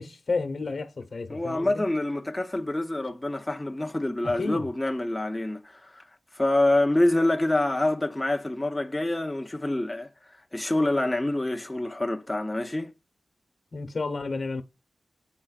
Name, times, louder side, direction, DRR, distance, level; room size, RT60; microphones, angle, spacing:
voice 1, 0.0-1.9 4.2-4.6 13.7-14.6, left 3 dB, 60° left, 1.1 m, -31 dB
voice 2, 1.3-6.0 6.3-10.1 10.5-12.9, left 1 dB, 15° left, 0.9 m, -26 dB
10.0 x 3.9 x 2.4 m
cardioid pair, 65°, 0 cm